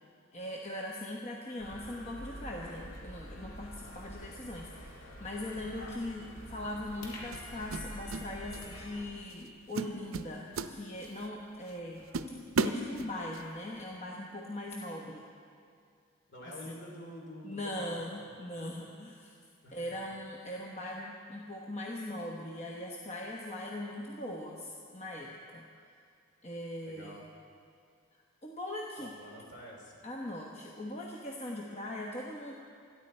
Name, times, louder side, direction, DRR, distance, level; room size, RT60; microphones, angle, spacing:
voice 1, 0.3-12.0 12.6-15.3 16.4-16.5 17.4-19.4 19.7-25.7 26.4-27.2 28.1-29.1 30.0-32.5, left 1 dB, 30° left, -1 dB, 1.1 m, -40 dB
sound 1, 1.6-9.1, equal, 70° left, 2.2 m, -46 dB
voice 2, 3.8-4.2 11.9-12.3 16.3-18.0 19.6-19.8 26.8-27.3 29.0-30.0, equal, 50° left, -1 dB, 2.9 m, -48 dB
sound 2, 6.0-6.2 7.3-8.3 8.5-8.8 9.3-9.5 9.7-11.3 11.7-11.8 12.1-13.5, right 3 dB, 75° right, 0.6 m, -34 dB
27.5 x 10.5 x 4.4 m, 2.3 s
head